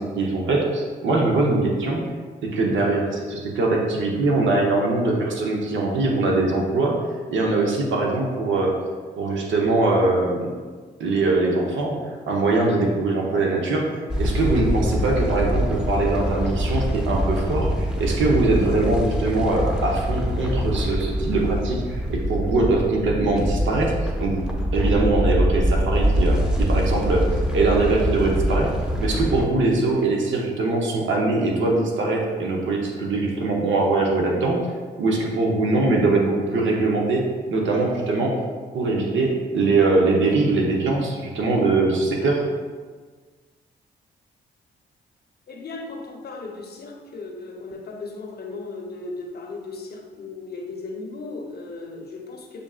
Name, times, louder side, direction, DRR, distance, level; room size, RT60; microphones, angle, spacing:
voice 1, 0.0-2.1 2.4-7.0 7.3-8.8 9.2-10.6 11.0-23.9 24.2-24.4 24.7-34.6 35.0-37.2 37.5-38.4 38.7-42.4, right 2 dB, 70° right, -1 dB, 0.8 m, -22 dB
sound 1, 14.1-29.5, equal, 5° right, 0.7 m, -24 dB
voice 2, 45.5-52.6, left 3 dB, 55° left, 1 dB, 0.8 m, -36 dB
6.7 x 2.5 x 2.4 m, 1.5 s
supercardioid pair, 50°, 20 cm